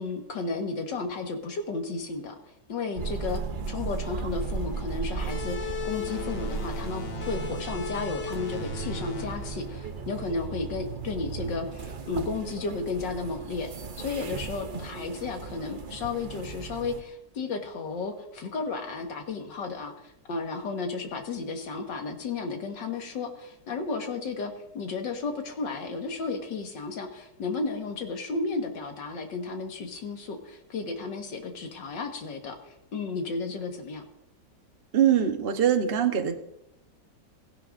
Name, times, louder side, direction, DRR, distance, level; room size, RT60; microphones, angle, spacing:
voice 1, 0.0-2.4 2.7-3.4 3.7-13.7 14.0-34.1, left 4 dB, 75° left, 4 dB, 2.2 m, -33 dB
sound 1, 3.0-17.0, right 5 dB, 85° right, 0.4 m, -36 dB
sound 2, 5.3-10.6, left 6 dB, 40° left, 1.0 m, -37 dB
voice 2, 34.9-36.4, right 9 dB, 40° right, 5 dB, 1.1 m, -23 dB
16.5 x 16.5 x 2.6 m, 0.81 s
omnidirectional pair, 2.0 m